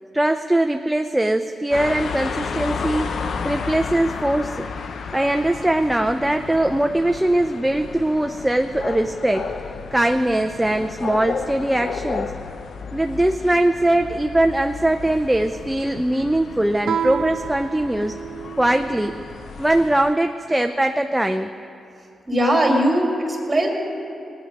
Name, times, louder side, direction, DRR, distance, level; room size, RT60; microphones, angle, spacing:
voice 1, 0.1-3.1 3.4-4.7 5.1-9.5 9.9-12.3 12.9-18.2 18.6-19.1 19.6-21.5, right 1 dB, 10° right, 6 dB, 0.5 m, -21 dB
sound 1, 1.7-20.1, left 5 dB, 70° left, 0.6 m, -33 dB
Guitar, 16.8-19.3, right 8 dB, 80° right, 0.3 m, -29 dB
voice 2, 22.3-23.7, right 1 dB, 25° right, 0 dB, 2.8 m, -19 dB
19.0 x 9.2 x 5.2 m, 2.5 s
cardioid pair, 80°, 0 cm